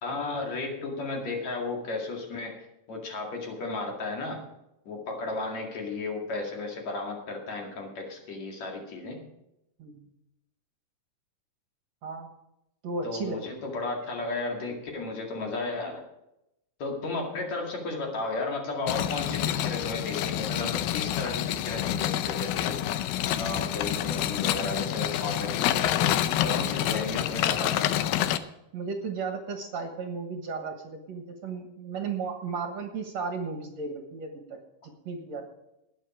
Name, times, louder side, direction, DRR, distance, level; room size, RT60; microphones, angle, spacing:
voice 1, 0.0-4.4 4.9-9.2 13.0-16.0 16.8-22.9 23.2-28.1, left 3 dB, 55° left, 0 dB, 3.3 m, -34 dB
voice 2, 12.8-13.4 28.7-34.6 35.1-35.4, right 4 dB, 55° right, 4 dB, 2.3 m, -34 dB
sound 1, 18.9-28.4, left 12 dB, 85° left, 2.5 m, -28 dB
19.5 x 7.4 x 5.0 m, 0.86 s
omnidirectional pair, 4.0 m